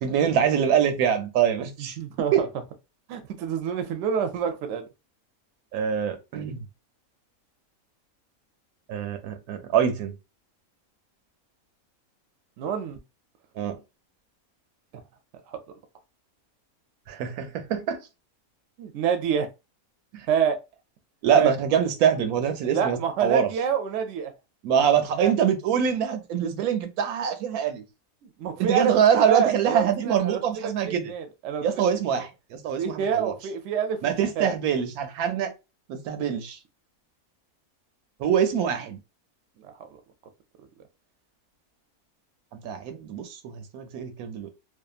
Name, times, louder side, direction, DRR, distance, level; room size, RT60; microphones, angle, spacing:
voice 1, 0.0-2.0 2.3-2.4 5.7-6.6 8.9-10.1 13.6-13.8 17.1-18.0 20.1-20.3 21.2-23.5 24.6-27.8 28.6-31.1 31.6-33.3 34.0-35.5 35.9-36.6 38.2-39.0 42.5-44.5, right 8 dB, 90° right, 1.1 m, -24 dB
voice 2, 1.8-2.5 3.1-4.9 12.6-13.0 15.5-15.6 18.8-19.5 20.3-20.6 21.3-21.5 22.6-24.3 25.2-25.3 28.2-31.8 32.1-32.3 32.8-34.5 39.6-40.0, right 7 dB, 65° right, 0.8 m, -27 dB
2.7 x 2.3 x 2.3 m
omnidirectional pair, 1.5 m